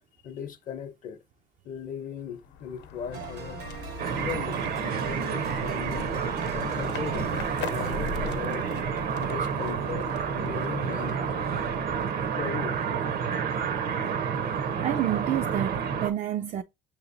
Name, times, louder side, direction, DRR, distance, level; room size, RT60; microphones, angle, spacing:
voice 1, 0.2-1.2 1.6-3.6 4.1-6.1 6.5-7.3 7.6-8.7 9.2-10.1 10.3-11.2 12.4-12.8, left 7 dB, 50° left, 0.7 m, -38 dB
sound 1, 2.2-13.0, left 6 dB, 85° left, 0.8 m, -41 dB
sound 2, 3.1-9.9, right 6 dB, 85° right, 1.3 m, -41 dB
sound 3, 4.0-16.1, right 7 dB, 65° right, 0.8 m, -29 dB
voice 2, 14.8-16.6, right 11 dB, 45° right, 0.4 m, -29 dB
6.3 x 2.9 x 2.6 m
cardioid pair, 110°, 17 cm